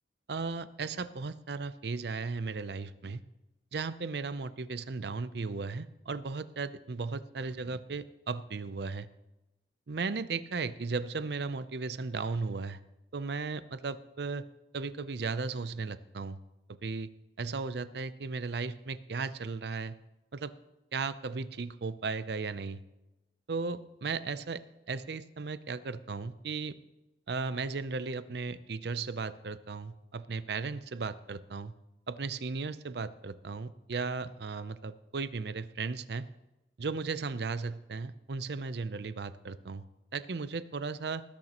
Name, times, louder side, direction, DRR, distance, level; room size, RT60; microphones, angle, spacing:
voice 1, 0.3-3.2 3.7-9.1 9.9-12.8 13.1-14.4 14.7-16.4 16.7-17.1 17.4-20.0 20.3-20.5 20.9-22.8 23.5-26.7 27.3-31.7 32.1-36.3 36.8-39.8 40.1-41.2, right 4 dB, 65° right, 14 dB, 0.6 m, -36 dB
19.5 x 10.5 x 3.0 m, 0.97 s
head